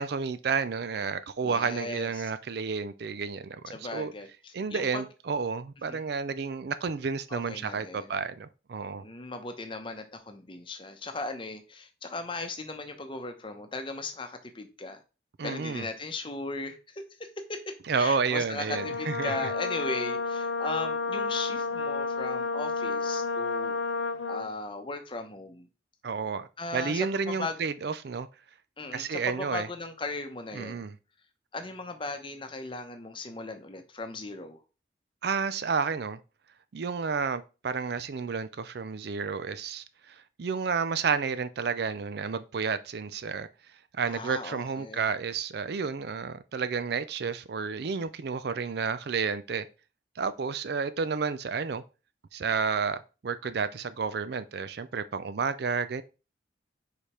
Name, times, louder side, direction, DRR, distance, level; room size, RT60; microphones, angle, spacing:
voice 1, 0.0-4.1 4.5-9.0 15.4-15.9 17.9-19.5 26.0-28.3 28.9-29.7 30.5-31.0 35.2-36.2 36.7-43.5 43.9-49.7 50.2-51.8 52.3-56.0, right 5 dB, 55° right, 0.4 m, -31 dB
voice 2, 1.4-2.3 3.7-5.0 5.9-6.1 7.3-8.1 9.0-15.0 15.4-17.0 17.5-17.6 18.0-23.7 24.3-25.7 26.6-27.6 28.8-30.9 31.5-34.6 44.1-45.1, left 3 dB, 25° left, 0.9 m, -37 dB
Brass instrument, 18.7-24.5, left 4 dB, 85° left, 0.8 m, -31 dB
5.1 x 4.9 x 4.3 m
head